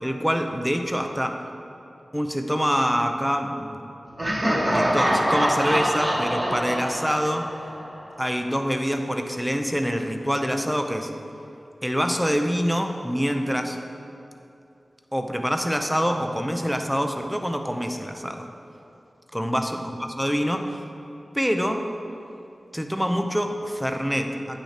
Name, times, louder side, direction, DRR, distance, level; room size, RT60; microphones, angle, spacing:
voice 1, 0.0-1.4 2.1-3.8 4.7-7.5 8.2-11.1 11.8-13.8 15.1-18.5 19.3-19.8 20.2-20.8 21.3-21.9 22.7-24.6, equal, ahead, 4 dB, 0.6 m, -25 dB
Laughter, 4.2-8.1, equal, 35° right, 1.4 m, -24 dB
9.6 x 6.4 x 3.4 m, 2.7 s
wide cardioid pair, 80°, 0 cm